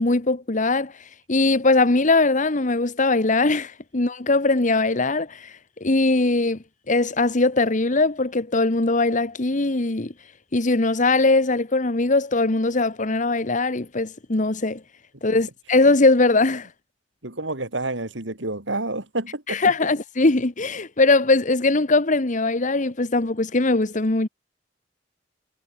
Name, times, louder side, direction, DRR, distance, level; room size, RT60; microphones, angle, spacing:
voice 1, 0.0-6.6 6.9-10.1 10.5-14.8 15.2-16.7 19.5-24.3, left 3 dB, 45° left, 1.3 m, -21 dB
voice 2, 17.2-19.6, right 2 dB, 80° right, 4.1 m, -29 dB
head